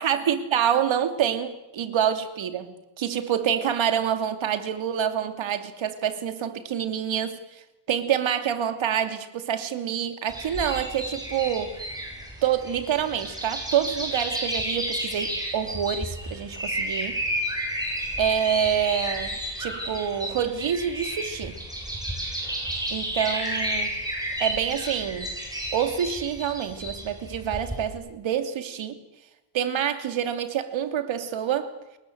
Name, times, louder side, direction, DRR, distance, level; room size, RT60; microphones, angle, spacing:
voice 1, 0.0-11.7 12.4-17.2 18.2-21.6 22.9-24.0 24.4-25.4 25.7-29.0 29.5-31.7, right 9 dB, 80° right, 2.9 m, -27 dB
sound 1, 10.3-27.9, right 1 dB, 10° right, 7.6 m, -32 dB
29.5 x 21.5 x 8.0 m
wide cardioid pair, 150°, 45 cm